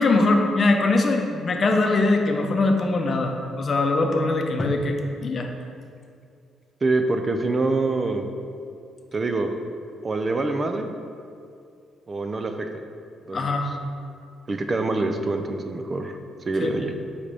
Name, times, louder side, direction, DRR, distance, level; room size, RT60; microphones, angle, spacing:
voice 1, 0.0-5.5 13.3-13.7 16.6-16.8, left 2 dB, 45° left, 3 dB, 0.7 m, -22 dB
voice 2, 6.8-8.3 9.1-9.6 10.0-10.9 12.1-12.7 13.3-13.5 14.5-16.1 16.5-16.9, right 3 dB, 30° right, 6 dB, 0.4 m, -25 dB
7.6 x 4.2 x 3.4 m, 2.4 s
cardioid pair, 90°, 0 cm